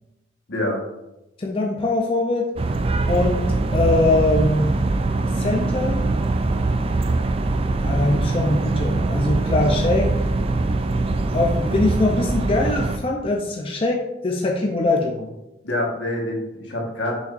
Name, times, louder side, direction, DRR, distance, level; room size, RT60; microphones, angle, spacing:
voice 1, 0.5-0.8 6.5-6.6 15.6-17.1, left 1 dB, 75° left, -1 dB, 1.5 m, -26 dB
voice 2, 1.4-2.5 3.1-4.8 5.3-6.1 6.6-6.7 7.8-10.2 11.3-15.3, left 2 dB, 30° left, 0 dB, 0.5 m, -22 dB
sound 1, 2.6-13.0, right 2 dB, 30° right, 0.3 m, -22 dB
6.3 x 6.2 x 2.6 m, 0.96 s
head